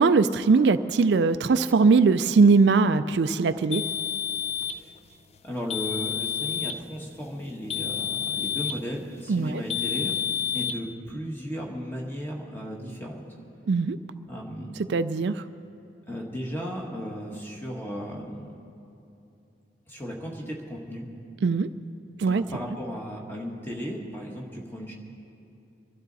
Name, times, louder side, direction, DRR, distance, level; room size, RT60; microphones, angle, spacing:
voice 1, 0.0-3.8 9.3-9.6 13.7-14.0 14.9-15.4 21.4-21.7 22.2-22.4, right 4 dB, 70° right, 11 dB, 0.4 m, -20 dB
sound 1, 3.7-4.8 5.7-6.8 7.7-8.8 9.7-10.8, left 9 dB, 35° left, 0.4 m, -29 dB
voice 2, 5.4-10.1 10.5-13.2 14.3-14.7 16.1-18.5 19.9-21.0 22.3-24.9, equal, 10° left, -1 dB, 1.5 m, -35 dB
24.0 x 12.5 x 4.1 m, 2.8 s
head